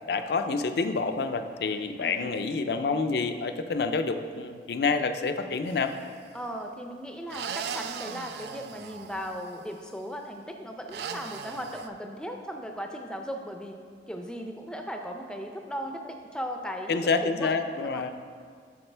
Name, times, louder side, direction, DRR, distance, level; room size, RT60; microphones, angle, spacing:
voice 1, 0.1-5.9 16.9-18.1, left 4 dB, 65° left, 8 dB, 0.4 m, -28 dB
voice 2, 2.0-2.3 6.3-13.8 14.1-17.5 17.8-18.1, equal, 5° left, 4 dB, 0.4 m, -37 dB
sound 1, 5.7-6.2 7.3-9.7 10.9-11.9, right 6 dB, 70° right, 0.3 m, -38 dB
8.7 x 6.5 x 3.3 m, 2.1 s
head